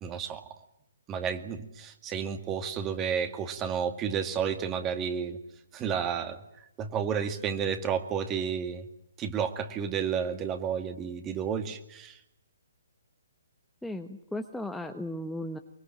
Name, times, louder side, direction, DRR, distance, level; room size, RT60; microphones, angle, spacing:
voice 1, 0.0-0.4 1.1-5.4 5.7-8.9 9.2-12.2, right 7 dB, 20° right, 8 dB, 2.2 m, -31 dB
voice 2, 13.8-15.6, left 1 dB, ahead, 5 dB, 1.1 m, -36 dB
24.0 x 22.5 x 8.8 m, 0.79 s
figure-of-eight pair, 135°, 0 cm